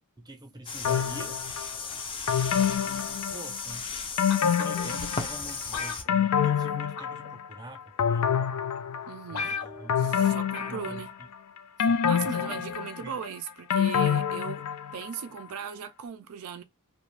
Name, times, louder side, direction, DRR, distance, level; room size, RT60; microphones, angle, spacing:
voice 1, 0.2-1.4 2.5-3.9 4.4-8.3 9.3-10.4 10.7-11.3 11.8-12.7 13.0-13.2, right 1 dB, 20° right, 0.6 m, -45 dB
sound 1, 0.7-6.0, left 4 dB, 25° left, 0.4 m, -36 dB
sound 2, 0.8-1.7 2.3-3.7 4.2-5.5 5.8-7.5 8.0-9.3 9.9-11.3 11.8-15.0 15.4-15.5, left 8 dB, 90° left, 0.4 m, -27 dB
sound 3, 4.3-5.0 5.7-6.7 7.0-7.3 8.1-8.2 8.8-8.9 9.0-9.1 9.3-10.0 10.5-10.9 11.2-11.3, left 5 dB, 70° left, 0.7 m, -36 dB
voice 2, 9.1-9.5 10.0-11.1 12.0-14.7 14.9-16.6, right 7 dB, 75° right, 0.4 m, -38 dB
2.4 x 2.2 x 3.1 m
head